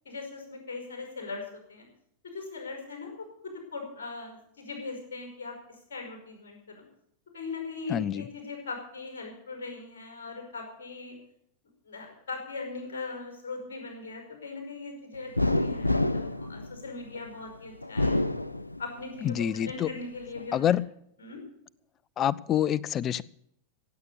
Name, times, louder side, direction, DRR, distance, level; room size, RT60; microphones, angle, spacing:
voice 1, 0.0-1.9 2.2-6.8 7.3-11.2 11.8-18.2 18.8-20.7 21.2-21.4, left 3 dB, 60° left, 5.2 m, -40 dB
voice 2, 7.9-8.2 19.2-19.9 20.5-20.9 22.2-23.2, left 10 dB, 30° left, 0.5 m, -26 dB
sound 1, 15.4-17.3 17.8-19.2 19.6-20.5, left 2 dB, 85° left, 0.5 m, -28 dB
16.5 x 8.3 x 8.2 m
figure-of-eight pair, 90°, 0 cm